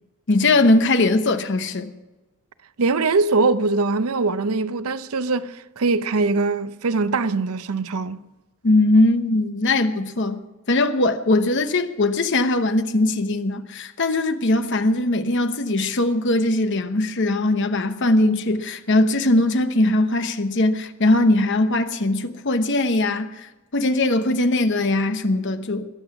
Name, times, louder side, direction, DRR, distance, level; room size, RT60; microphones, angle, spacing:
voice 1, 0.3-1.9 8.6-10.4 10.7-25.9, left 2 dB, 55° left, 1.0 m, -20 dB
voice 2, 2.8-8.2, right 3 dB, 75° right, 0.6 m, -22 dB
21.5 x 7.9 x 5.9 m
head